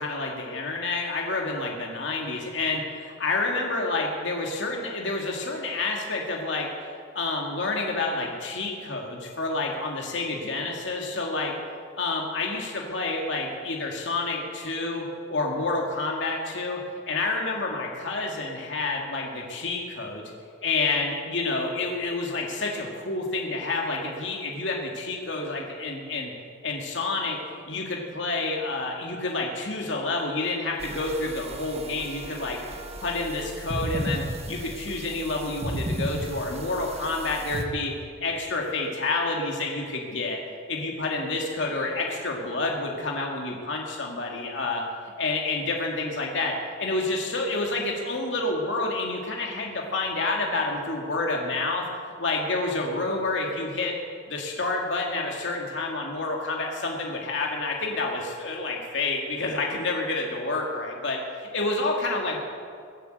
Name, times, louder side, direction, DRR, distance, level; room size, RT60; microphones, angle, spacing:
voice 1, 0.0-6.7 7.1-11.6 12.0-16.8 17.1-20.2 20.6-26.3 26.6-27.4 27.7-32.6 33.0-40.4 40.7-44.9 45.2-51.9 52.2-54.0 54.3-62.4, left 3 dB, 70° left, 0 dB, 2.2 m, -29 dB
sound 1, 30.8-37.6, right 1 dB, 35° right, 1.4 m, -34 dB
22.0 x 8.3 x 8.0 m, 2.2 s
head